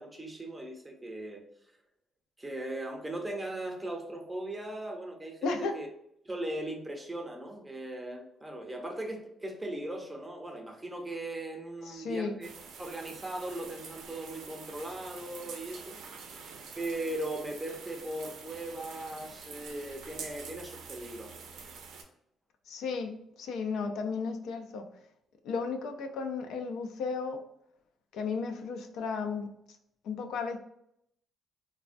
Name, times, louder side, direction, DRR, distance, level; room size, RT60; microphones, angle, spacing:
voice 1, 0.0-1.4 2.4-5.9 6.2-12.5 12.8-16.0 16.8-21.4, right 1 dB, 15° right, 2 dB, 0.6 m, -38 dB
voice 2, 5.4-5.8 11.9-12.4 22.7-24.9 25.4-27.4 28.1-29.5 30.0-30.6, left 4 dB, 80° left, 6 dB, 0.3 m, -34 dB
sound 1, 12.4-22.0, right 5 dB, 85° right, 0.4 m, -46 dB
3.2 x 2.1 x 2.5 m, 0.75 s
cardioid pair, 90°, 0 cm